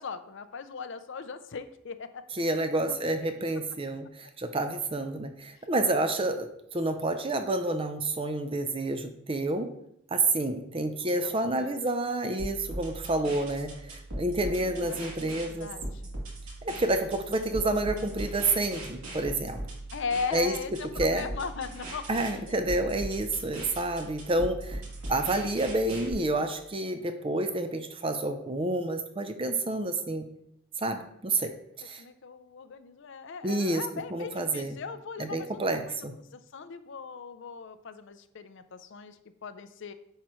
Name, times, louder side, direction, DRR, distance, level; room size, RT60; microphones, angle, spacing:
voice 1, 0.0-2.3 5.9-6.1 11.0-11.7 14.4-16.2 19.9-22.5 32.0-36.0 36.3-39.9, left 5 dB, 55° left, 11 dB, 0.5 m, -39 dB
voice 2, 2.4-9.7 10.1-15.7 16.6-19.6 20.3-20.5 21.0-21.3 22.1-24.8 25.1-30.3 30.8-32.0 33.4-34.8 35.2-36.1, right 2 dB, 25° right, 7 dB, 0.5 m, -29 dB
sound 1, 12.4-26.1, right 1 dB, 85° right, 2.7 m, -39 dB
10.0 x 4.9 x 3.1 m, 0.76 s
head